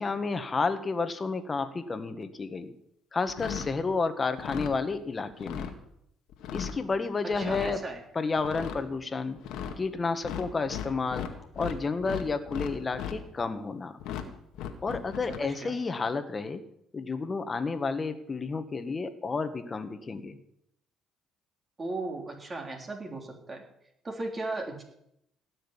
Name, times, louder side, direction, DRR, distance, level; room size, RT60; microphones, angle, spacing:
voice 1, 0.0-2.7 3.1-5.7 6.5-7.8 8.2-9.4 9.8-11.3 11.6-14.0 14.8-16.6 16.9-20.4, left 4 dB, 30° left, 9 dB, 1.8 m, -31 dB
sound 1, 3.3-3.7 4.3-4.7 5.3-5.7 6.3-6.8 7.3-7.7 8.4-8.8 9.4-9.8 10.2-11.8 12.0-13.2 14.0-14.2 14.5-15.4, left 8 dB, 80° left, 1.9 m, -36 dB
voice 2, 7.4-8.0 15.3-15.7 21.8-23.6 24.0-24.8, right 2 dB, 30° right, 2 dB, 3.5 m, -36 dB
17.0 x 6.6 x 10.0 m, 0.77 s
supercardioid pair, 80°, 0 cm